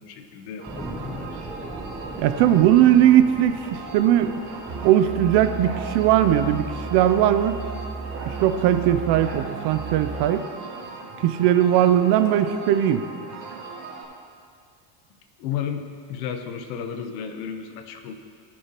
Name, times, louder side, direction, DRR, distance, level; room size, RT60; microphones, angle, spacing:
voice 1, 0.0-1.4 15.4-18.1, left 8 dB, 90° left, 7 dB, 1.1 m, -33 dB
sound 1, 0.6-14.0, right 3 dB, 75° right, 2.0 m, -39 dB
sound 2, 0.7-11.7 12.1-12.2, right 1 dB, 5° right, 0.8 m, -42 dB
voice 2, 2.2-4.3 4.8-7.6 8.2-10.5 11.2-13.0, right 11 dB, 55° right, 10 dB, 0.7 m, -19 dB
Musical instrument, 4.7-10.4, right 5 dB, 25° right, 1.4 m, -34 dB
18.0 x 6.3 x 3.0 m, 2.1 s
supercardioid pair, 120°, 50 cm